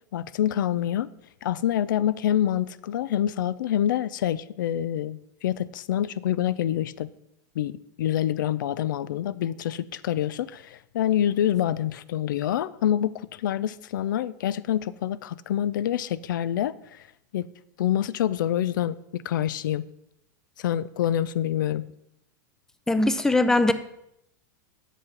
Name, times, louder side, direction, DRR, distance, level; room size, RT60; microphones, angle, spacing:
voice 1, 0.1-1.1 1.4-7.1 7.6-17.1 17.3-17.5 17.8-19.8 20.6-21.8, left 11 dB, 80° left, 18 dB, 0.4 m, -26 dB
voice 2, 22.9-23.7, left 2 dB, 5° left, 12 dB, 0.4 m, -20 dB
8.2 x 5.9 x 5.2 m, 0.82 s
hypercardioid pair, 125°, 10 cm